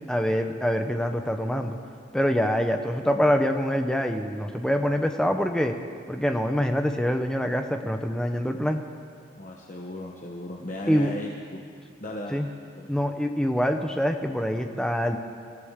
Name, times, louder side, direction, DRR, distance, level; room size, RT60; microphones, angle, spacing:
voice 1, 0.1-1.8 2.1-5.7 6.1-8.8 10.9-11.1 12.3-12.5 12.9-15.2, equal, 5° left, 5 dB, 0.8 m, -25 dB
voice 2, 9.4-11.6 12.0-12.4 12.7-13.0, left 1 dB, 40° left, -1 dB, 1.1 m, -36 dB
26.5 x 14.5 x 3.7 m, 2.2 s
head